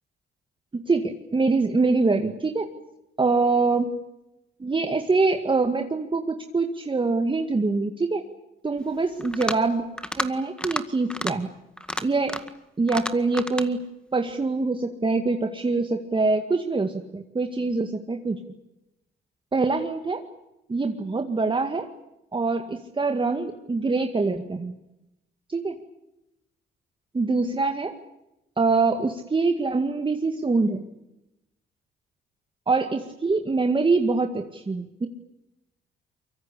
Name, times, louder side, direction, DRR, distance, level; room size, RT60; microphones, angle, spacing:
voice 1, 0.9-2.7 3.2-3.9 4.6-8.2 8.6-9.8 10.2-11.5 12.0-12.4 12.8-18.4 19.5-20.2 20.7-21.9 22.3-24.7 25.5-25.8 27.1-27.9 28.6-30.8 32.7-35.1, right 3 dB, 25° right, 5 dB, 2.1 m, -24 dB
sound 1, 9.2-9.7 10.0-10.3 10.6-10.8 11.1-11.3 11.8-12.6 12.9-13.7, left 1 dB, 5° left, 1.9 m, -30 dB
24.0 x 23.5 x 8.5 m, 0.90 s
cardioid pair, 90°, 20 cm